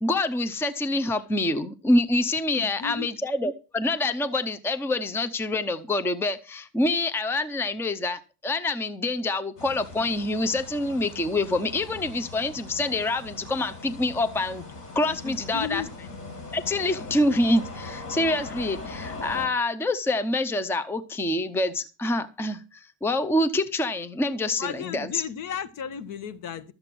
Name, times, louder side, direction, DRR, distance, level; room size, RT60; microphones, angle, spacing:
voice 1, 0.0-14.6 14.9-15.8 16.5-25.2, left 2 dB, 5° left, 0.7 m, -26 dB
voice 2, 2.6-3.1 15.2-15.9 24.6-26.7, left 8 dB, 55° left, 1.4 m, -34 dB
sound 1, 9.6-19.5, left 3 dB, 35° left, 5.3 m, -40 dB
13.0 x 7.9 x 6.1 m
cardioid pair, 145°, 39 cm